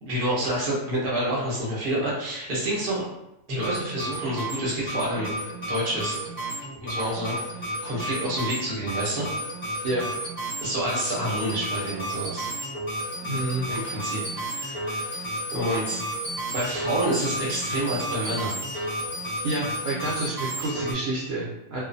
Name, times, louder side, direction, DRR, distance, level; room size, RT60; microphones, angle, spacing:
voice 1, 0.0-3.0 3.5-5.3 5.7-6.2 6.8-9.3 10.6-12.5 13.7-14.2 14.5-16.0 16.5-18.6, right 1 dB, 45° right, -6 dB, 1.0 m, -28 dB
sound 1, 3.5-20.9, right 1 dB, 10° left, 1.0 m, -32 dB
voice 2, 13.2-13.7 19.4-21.8, right 2 dB, 70° right, -5 dB, 1.0 m, -29 dB
2.6 x 2.4 x 2.6 m, 0.91 s
omnidirectional pair, 1.5 m